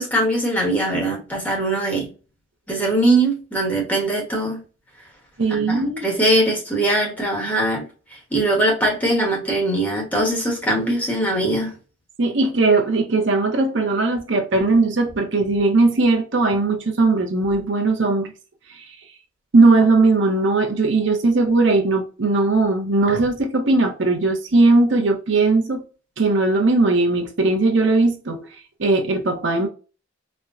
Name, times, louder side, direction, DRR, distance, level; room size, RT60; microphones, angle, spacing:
voice 1, 0.0-2.1 2.7-4.6 5.6-7.8 8.3-11.7, right 1 dB, 10° left, 1.2 m, -21 dB
voice 2, 5.4-6.1 10.7-10.8 12.2-18.3 18.7-18.9 19.5-25.8 26.2-28.4 28.8-29.7, right 3 dB, 65° right, 0.8 m, -18 dB
4.3 x 2.2 x 2.5 m
head